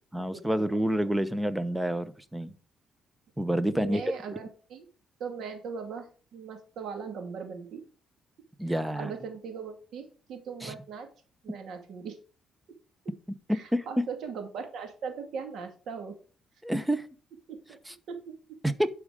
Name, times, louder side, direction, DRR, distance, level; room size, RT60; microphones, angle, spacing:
voice 1, 0.1-2.5 3.4-4.0 8.6-9.1 10.6-10.7 13.5-14.0 16.6-17.1 17.9-18.0 18.6-18.9, equal, 10° right, 14 dB, 0.9 m, -28 dB
voice 2, 3.7-4.9 5.2-7.8 8.7-11.1 11.4-12.2 13.5-16.2 17.5-17.8 18.1-18.3, right 5 dB, 70° right, 5 dB, 2.4 m, -39 dB
11.5 x 4.9 x 4.9 m, 0.38 s
cardioid pair, 90°, 0 cm